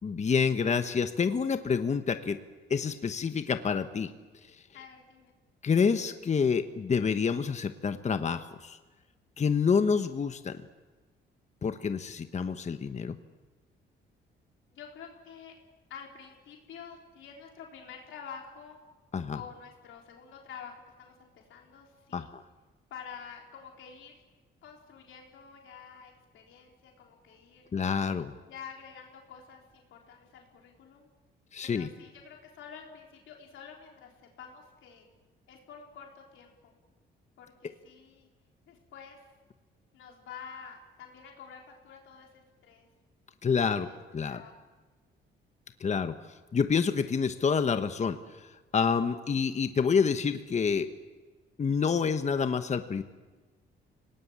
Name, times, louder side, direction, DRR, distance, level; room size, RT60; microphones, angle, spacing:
voice 1, 0.0-2.4 2.7-4.1 4.5-4.6 5.6-8.8 9.4-10.6 11.6-13.2 19.1-19.4 22.1-22.4 27.7-28.3 31.5-31.9 43.4-43.9 44.1-44.4 45.8-46.1 46.5-50.9 51.6-53.0, left 6 dB, 35° left, 9 dB, 1.1 m, -28 dB
voice 2, 4.7-5.3 14.7-15.5 15.9-18.8 19.3-22.3 22.9-24.2 24.6-27.7 28.5-31.1 31.7-35.1 35.5-36.8 37.4-38.3 38.7-39.3 39.9-42.9 43.7-44.0 44.3-44.5, left 7 dB, 80° left, 1 dB, 3.8 m, -48 dB
26.0 x 18.5 x 8.7 m, 1.3 s
cardioid pair, 90°, 20 cm